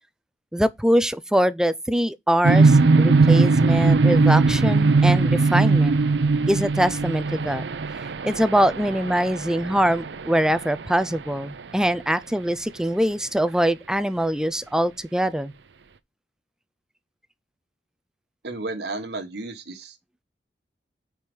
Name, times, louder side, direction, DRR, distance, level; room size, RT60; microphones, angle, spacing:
voice 1, 0.5-6.0 6.5-7.6 8.2-15.5, equal, 5° right, 0.4 m, -23 dB
sound 1, 2.4-11.3, right 3 dB, 85° right, 0.6 m, -20 dB
voice 2, 18.4-19.9, right 2 dB, 70° right, 1.4 m, -33 dB
4.8 x 4.5 x 5.3 m
head